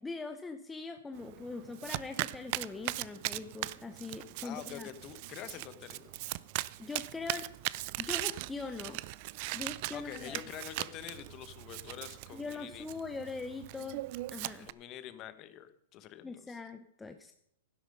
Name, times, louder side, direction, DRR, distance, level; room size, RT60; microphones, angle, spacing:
voice 1, 0.0-4.9 6.8-7.5 8.0-9.0 9.5-10.4 12.3-14.0 14.3-14.7 16.2-17.3, left 4 dB, 10° left, 6 dB, 0.7 m, -42 dB
Domestic sounds home sounds, 1.2-14.7, right 19 dB, 45° right, 0.4 m, -40 dB
voice 2, 4.4-6.1 9.6-12.9 14.6-16.6, left 11 dB, 30° left, 12 dB, 1.0 m, -46 dB
12.0 x 10.5 x 5.3 m, 0.71 s
hypercardioid pair, 145°, 0 cm